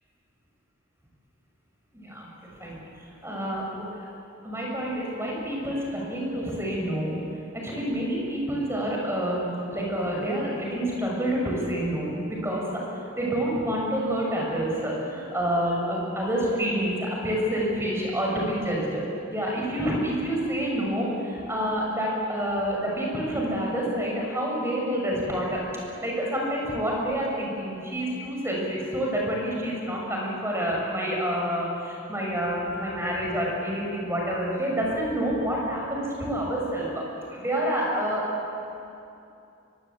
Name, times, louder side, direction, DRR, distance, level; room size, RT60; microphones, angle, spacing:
voice 1, 1.9-2.8 3.2-4.1 4.4-7.2 7.5-12.8 13.2-19.0 19.3-25.6 26.0-37.0 37.3-38.2, equal, 10° right, -2 dB, 6.3 m, -28 dB
23.5 x 23.5 x 8.6 m, 2.7 s
head